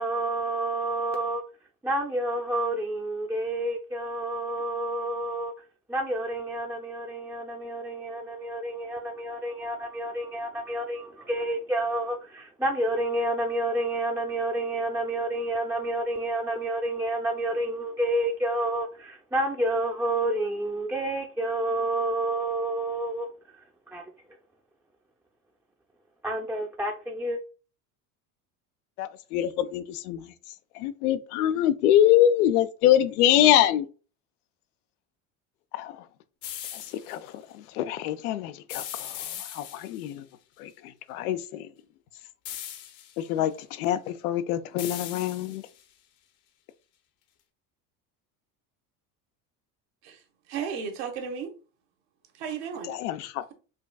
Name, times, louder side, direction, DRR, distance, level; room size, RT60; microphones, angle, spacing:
voice 1, 0.0-1.4 1.8-5.5 5.9-23.3 23.9-24.0 26.2-27.4, right 1 dB, 5° right, 0.5 m, -29 dB
voice 2, 29.0-30.3 30.8-33.9 35.7-36.0 36.7-37.2 37.7-39.2 39.5-40.2 40.6-40.7 41.1-41.7 43.2-45.6 52.9-53.4, left 11 dB, 90° left, 0.5 m, -24 dB
sound 1, 36.4-37.2 38.7-40.1 42.4-43.2 44.8-45.8, left 11 dB, 60° left, 0.8 m, -39 dB
voice 3, 50.0-51.5 52.3-52.9, right 6 dB, 70° right, 1.1 m, -34 dB
5.0 x 2.5 x 2.3 m
supercardioid pair, 90°, 44 cm